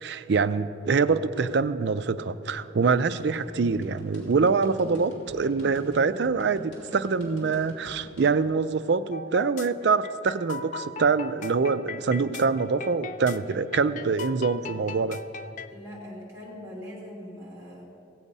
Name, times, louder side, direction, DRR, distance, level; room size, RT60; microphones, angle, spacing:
voice 1, 0.0-15.2, right 4 dB, 60° right, 13 dB, 0.4 m, -25 dB
sound 1, 3.2-8.3, right 1 dB, 65° left, 2.9 m, -44 dB
sound 2, 9.1-15.7, left 3 dB, 40° left, 0.4 m, -39 dB
voice 2, 15.7-17.8, left 1 dB, 15° right, -3 dB, 2.9 m, -41 dB
16.0 x 8.4 x 5.4 m, 2.7 s
head